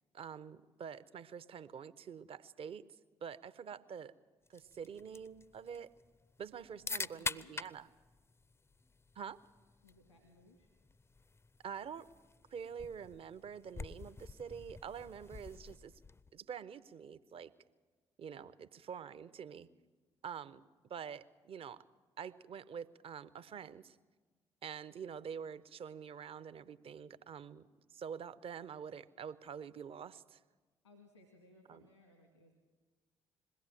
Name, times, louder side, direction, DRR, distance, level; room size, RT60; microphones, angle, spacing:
voice 1, 0.1-2.8 3.2-4.1 4.5-5.9 6.4-7.9 9.2-9.4 11.6-12.1 12.5-15.9 16.3-17.5 18.2-19.7 20.2-20.6 20.9-21.8 22.2-24.0 24.6-30.4 31.7-31.8, right 7 dB, 45° right, 15 dB, 0.7 m, -46 dB
sound 1, 4.5-16.4, left 3 dB, 20° left, 0.5 m, -47 dB
voice 2, 6.8-7.6 9.8-10.7 30.8-32.5, left 2 dB, 85° left, 5 dB, 1.8 m, -63 dB
21.0 x 16.5 x 7.6 m, 1.3 s
figure-of-eight pair, 45°, 14 cm